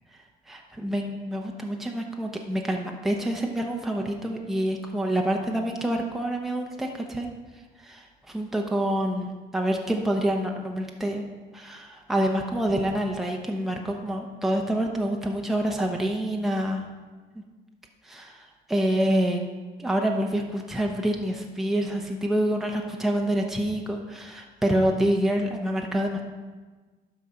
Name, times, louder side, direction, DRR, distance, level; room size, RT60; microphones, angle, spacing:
voice 1, 0.5-7.3 7.8-11.3 11.5-16.8 18.0-19.4 19.8-26.2, right 1 dB, ahead, 1 dB, 0.9 m, -27 dB
12.0 x 4.2 x 5.1 m, 1.3 s
cardioid pair, 110°, 17 cm